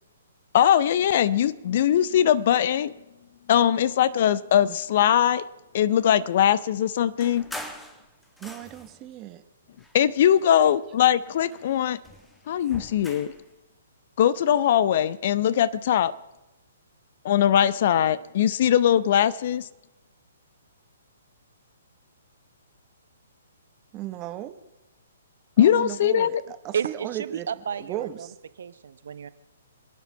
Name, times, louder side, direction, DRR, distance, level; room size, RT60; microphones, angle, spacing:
voice 1, 0.5-2.9 3.5-5.5 5.7-7.5 9.9-12.0 12.5-13.3 14.2-16.1 17.2-19.7 25.6-26.4, left 10 dB, 50° left, 0.6 m, -21 dB
sound 1, 7.2-9.1 9.7-10.9 11.2-13.5, left 1 dB, 5° left, 1.2 m, -43 dB
voice 2, 8.4-9.4 23.9-24.6 25.6-27.5 27.8-28.3, right 13 dB, 25° right, 1.1 m, -35 dB
voice 3, 26.7-28.3 28.6-29.3, right 7 dB, 60° right, 0.9 m, -32 dB
26.5 x 9.2 x 5.6 m
figure-of-eight pair, 125°, 0 cm